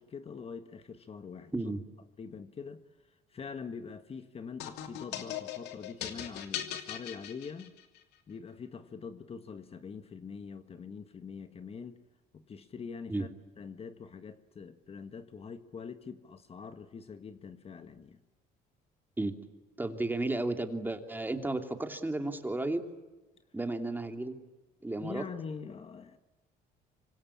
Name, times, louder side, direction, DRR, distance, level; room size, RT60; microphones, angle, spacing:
voice 1, 0.0-1.5 2.2-7.7 8.3-12.0 12.3-13.3 13.6-18.2 25.0-26.2, left 5 dB, 35° left, 1.5 m, -44 dB
voice 2, 1.5-1.8 13.1-13.2 19.2-19.3 19.8-22.8 23.5-24.3 24.8-25.3, right 2 dB, 10° right, 2.9 m, -33 dB
sound 1, 4.6-8.0, left 11 dB, 85° left, 2.8 m, -39 dB
26.0 x 25.0 x 8.6 m
cardioid pair, 110°, 17 cm